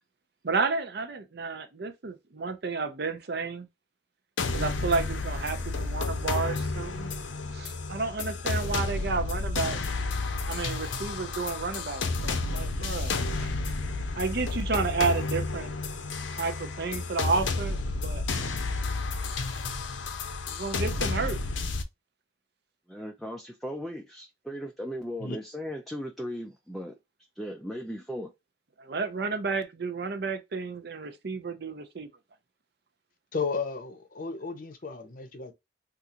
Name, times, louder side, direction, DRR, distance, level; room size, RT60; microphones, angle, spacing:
voice 1, 0.4-3.7 4.5-7.1 7.5-9.8 10.4-13.5 14.2-15.7 16.3-18.2 20.5-21.4 28.8-32.1, right 4 dB, 60° right, 0.6 m, -31 dB
sound 1, 4.4-21.8, left 3 dB, 85° left, 0.6 m, -31 dB
voice 2, 22.9-27.0 27.4-28.3, equal, ahead, 0.4 m, -37 dB
voice 3, 33.3-35.5, left 4 dB, 45° left, 0.7 m, -33 dB
3.8 x 2.5 x 2.9 m
head